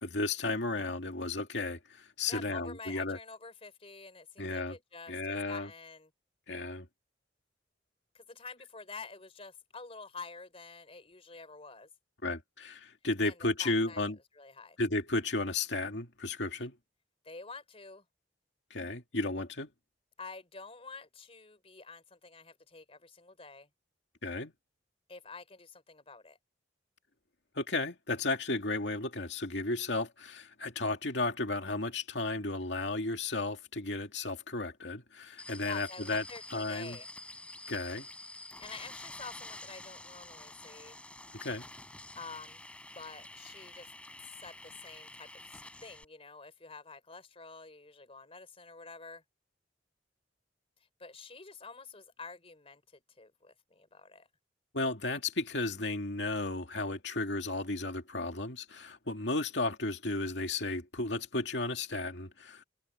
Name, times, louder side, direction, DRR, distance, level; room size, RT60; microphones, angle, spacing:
voice 1, 0.0-3.2 4.4-4.8 5.1-5.7 6.5-6.9 12.2-14.2 14.8-16.8 18.7-19.7 24.2-24.5 27.6-36.2 36.5-37.0 37.7-38.1 41.4-41.7 54.7-62.6, left 2 dB, 70° left, 2.5 m, -34 dB
voice 2, 2.3-6.1 8.1-11.9 13.2-14.8 17.2-18.1 20.2-23.7 25.1-26.4 35.3-37.1 38.6-41.0 42.2-42.6 42.9-43.9 44.3-49.2 51.0-54.3, left 4 dB, 35° left, 3.7 m, -48 dB
sound 1, 35.4-46.0, left 2 dB, 5° left, 3.7 m, -48 dB
head